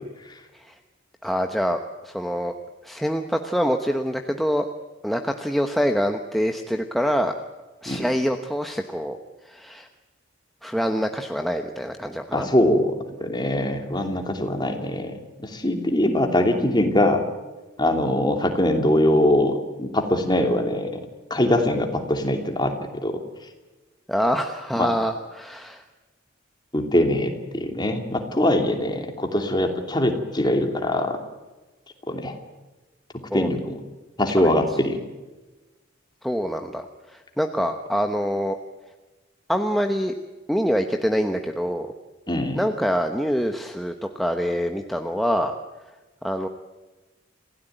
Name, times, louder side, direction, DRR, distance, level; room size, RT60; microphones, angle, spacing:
voice 1, 1.2-2.5 2.8-4.7 5.0-7.3 7.8-9.2 9.4-9.9 10.6-12.5 24.1-25.8 33.3-33.5 34.4-34.5 36.2-38.6 39.5-40.1 40.5-41.9 42.5-45.5 46.2-46.5, equal, ahead, 4 dB, 1.1 m, -25 dB
voice 2, 12.3-12.9 13.2-17.2 17.8-20.9 21.3-22.7 23.0-23.2 24.8-24.9 26.7-31.2 32.1-32.4 33.3-33.7 34.2-35.0 42.3-42.6, left 1 dB, 20° left, 4 dB, 2.8 m, -22 dB
27.0 x 16.5 x 9.2 m, 1.2 s
head